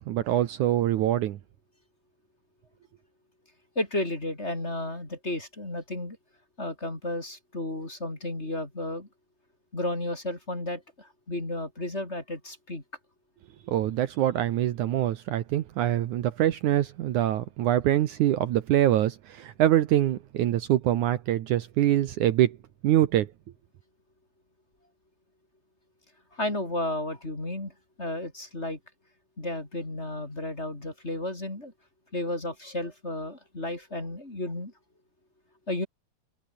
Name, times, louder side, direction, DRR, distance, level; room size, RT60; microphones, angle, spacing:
voice 1, 0.0-1.4 13.7-22.6 22.8-23.3, right 12 dB, 70° right, 2.4 m, -24 dB
voice 2, 3.8-6.2 6.6-9.1 9.7-12.8 26.3-27.7 28.0-28.8 29.4-31.7 32.1-34.7 35.7-35.9, left 1 dB, 20° left, 4.2 m, -33 dB
omnidirectional pair, 3.9 m